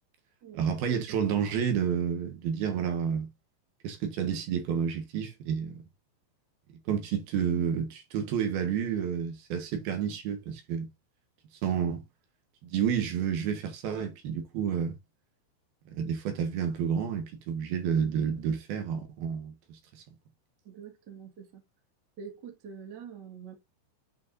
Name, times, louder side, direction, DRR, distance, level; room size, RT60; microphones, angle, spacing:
voice 1, 0.6-3.3 3.8-5.8 6.9-10.9 11.6-12.0 12.6-15.0 15.9-20.0, right 7 dB, 65° right, 2.8 m, -30 dB
voice 2, 20.6-21.6 22.2-23.5, right 7 dB, 85° right, 0.9 m, -45 dB
9.2 x 5.1 x 2.7 m
omnidirectional pair, 5.4 m